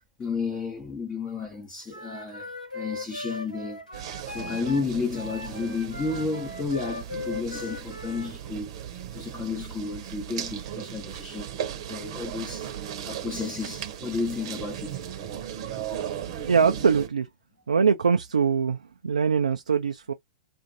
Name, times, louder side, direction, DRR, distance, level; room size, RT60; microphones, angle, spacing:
voice 1, 0.2-3.8 4.3-8.7 9.1-11.5 11.9-12.7 13.0-15.0, left 4 dB, 15° left, 0.7 m, -32 dB
Wind instrument woodwind instrument, 1.9-4.8 5.1-8.3, left 2 dB, 90° left, 1.0 m, -39 dB
sound 1, 3.9-17.1, right 9 dB, 45° right, 0.8 m, -37 dB
voice 2, 16.4-17.3 17.7-18.8 19.0-20.1, right 6 dB, 70° right, 0.4 m, -22 dB
2.5 x 2.5 x 2.7 m
figure-of-eight pair, 100°, 4 cm